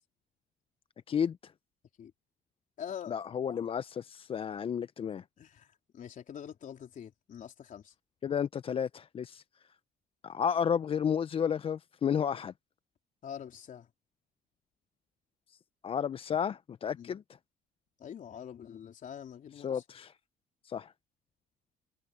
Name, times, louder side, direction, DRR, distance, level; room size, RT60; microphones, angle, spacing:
voice 1, 1.1-1.5 3.1-5.2 8.2-9.4 10.2-12.5 15.5-15.6 15.8-17.2 19.6-20.2 20.6-20.9, left 8 dB, 35° left, 0.5 m, -32 dB
voice 2, 2.8-3.1 5.4-7.9 13.2-13.9 17.0-17.1 18.0-19.8, left 9 dB, 50° left, 3.6 m, -45 dB
cardioid pair, 110°, 17 cm